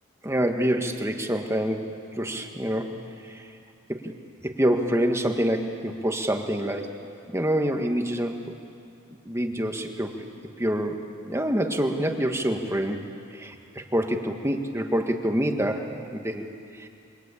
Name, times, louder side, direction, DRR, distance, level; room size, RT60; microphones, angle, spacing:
voice 1, 0.2-3.5 3.9-4.1 4.4-6.9 7.3-8.4 9.3-10.3 10.6-16.4 16.7-16.9, equal, 10° right, 4 dB, 1.7 m, -27 dB
28.0 x 24.0 x 8.5 m, 2.5 s
head